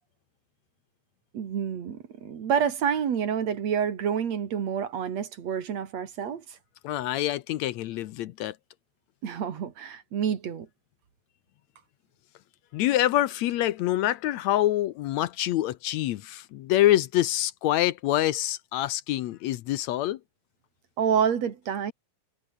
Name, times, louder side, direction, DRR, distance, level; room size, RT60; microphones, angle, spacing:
voice 1, 1.3-6.6 9.2-10.7 21.0-21.9, right 8 dB, 60° right, 3.2 m, -28 dB
voice 2, 6.8-8.6 12.7-20.2, left 14 dB, 75° left, 1.9 m, -26 dB
omnidirectional pair, 3.4 m